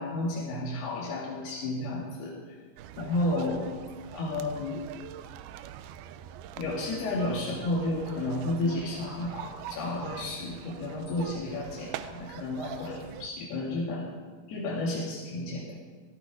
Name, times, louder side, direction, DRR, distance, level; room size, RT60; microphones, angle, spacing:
voice 1, 0.0-2.5 3.0-3.7 4.1-4.8 6.6-14.1 14.5-15.8, left 2 dB, 90° left, -4 dB, 4.4 m, -32 dB
sound 1, 2.8-13.3, right 11 dB, 85° right, 2.6 m, -43 dB
18.5 x 16.0 x 4.9 m, 1.5 s
omnidirectional pair, 4.4 m